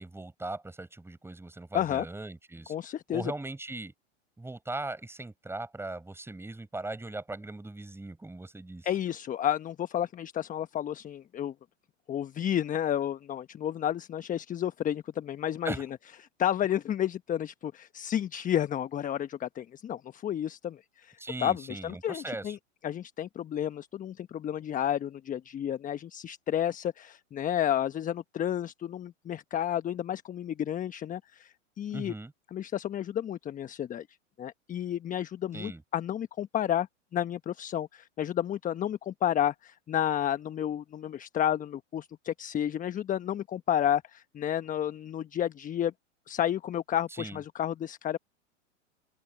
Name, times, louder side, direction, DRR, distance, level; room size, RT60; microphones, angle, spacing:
voice 1, 0.0-3.9 4.4-8.9 15.6-15.8 21.2-22.6 31.9-32.3 35.5-35.8 47.1-47.4, right 2 dB, 5° right, 6.8 m, -39 dB
voice 2, 1.7-2.0 2.7-3.3 8.8-11.5 12.1-15.9 16.4-22.6 22.8-32.1 32.5-34.1 34.4-36.9 37.1-45.9 46.3-48.2, left 10 dB, 20° left, 1.2 m, -31 dB
hypercardioid pair, 100°, 38 cm